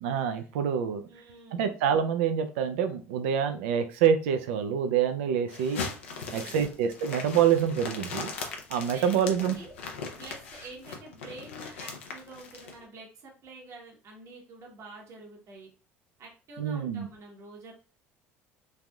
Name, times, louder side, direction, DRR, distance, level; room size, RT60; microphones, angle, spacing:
voice 1, 0.0-1.0 1.5-5.8 6.3-8.3 8.7-9.6 16.6-17.1, right 8 dB, 80° right, 8 dB, 0.4 m, -26 dB
voice 2, 1.1-1.8 6.2-6.7 8.9-9.8 10.2-15.7 16.2-17.7, right 2 dB, 50° right, 0 dB, 1.0 m, -47 dB
sound 1, 5.5-12.7, left 4 dB, 90° left, 0.5 m, -39 dB
3.2 x 2.5 x 2.2 m, 0.36 s
hypercardioid pair, 70°, 6 cm